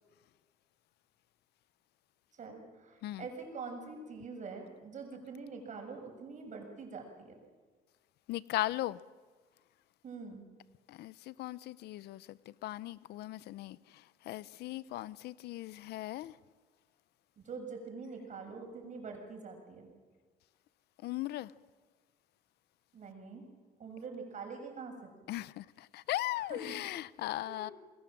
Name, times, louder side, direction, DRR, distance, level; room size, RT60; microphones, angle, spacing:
voice 1, 2.4-7.4 10.0-10.5 17.4-19.9 22.9-23.5 23.8-25.0 26.4-26.8 27.4-27.7, right 4 dB, 45° right, 6.7 m, -45 dB
voice 2, 8.3-9.0 10.9-13.8 14.3-16.3 21.0-21.5 25.3-27.7, left 15 dB, 75° left, 0.7 m, -38 dB
29.0 x 21.5 x 7.5 m
cardioid pair, 110°, 17 cm